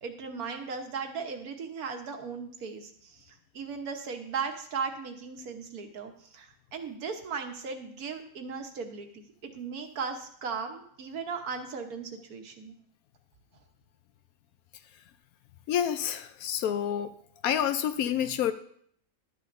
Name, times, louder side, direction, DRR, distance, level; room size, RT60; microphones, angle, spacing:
voice 1, 0.0-12.7, right 5 dB, 80° right, 5 dB, 1.6 m, -37 dB
voice 2, 15.7-17.1 17.4-18.5, left 9 dB, 80° left, 10 dB, 1.1 m, -28 dB
12.0 x 9.1 x 2.6 m, 0.63 s
omnidirectional pair, 1.5 m